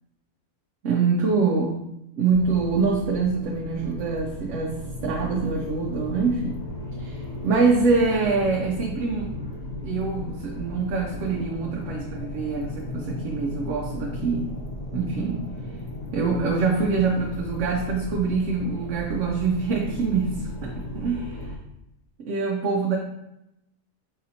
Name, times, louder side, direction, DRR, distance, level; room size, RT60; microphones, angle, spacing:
voice 1, 0.8-1.9 2.2-6.6 7.0-9.3 9.8-14.5 14.9-15.4 16.1-21.5 22.2-23.0, right 4 dB, 70° right, -1 dB, 0.9 m, -25 dB
sound 1, 2.3-21.6, left 1 dB, 50° left, 0.5 m, -35 dB
4.2 x 4.1 x 2.6 m, 0.86 s
omnidirectional pair, 1.4 m